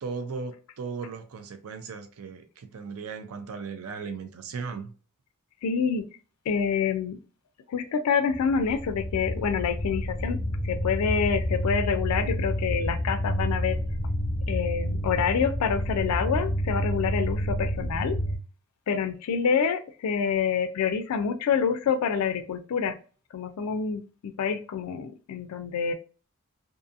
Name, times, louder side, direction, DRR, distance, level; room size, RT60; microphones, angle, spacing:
voice 1, 0.0-4.9, right 5 dB, 70° right, 0.4 m, -37 dB
voice 2, 5.6-6.1 6.5-7.2 7.7-10.4 10.6-13.8 14.5-18.2 18.9-23.0 23.3-25.9, left 6 dB, 75° left, 0.3 m, -27 dB
sound 1, 8.3-18.4, equal, 30° left, 0.8 m, -29 dB
2.6 x 2.4 x 2.6 m
head